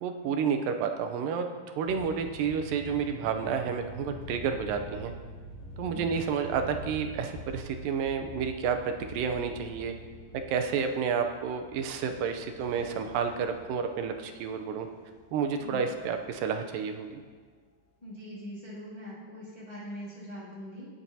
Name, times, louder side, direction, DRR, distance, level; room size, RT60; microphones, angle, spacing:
voice 1, 0.0-5.1 5.8-9.9 10.3-14.9 15.3-17.2, right 6 dB, 80° right, 6 dB, 2.3 m, -30 dB
sound 1, 1.8-17.3, equal, 60° left, 2.0 m, -46 dB
voice 2, 18.0-20.8, equal, 15° left, -9 dB, 2.0 m, -42 dB
17.0 x 7.5 x 2.8 m, 1.5 s
omnidirectional pair, 4.0 m